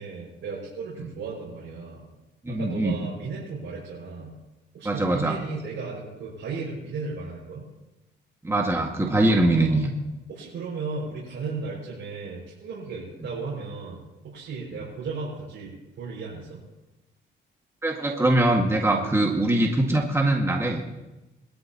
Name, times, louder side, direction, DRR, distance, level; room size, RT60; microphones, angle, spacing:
voice 1, 0.0-2.1 2.5-4.4 4.7-7.7 9.2-9.8 10.3-16.6 18.9-19.1, right 4 dB, 65° right, -6 dB, 5.9 m, -35 dB
voice 2, 2.4-2.9 4.8-5.4 8.4-9.9 17.8-20.8, right 1 dB, 15° right, 0 dB, 1.9 m, -22 dB
22.0 x 13.0 x 3.0 m, 1.0 s
cardioid pair, 90°, 20 cm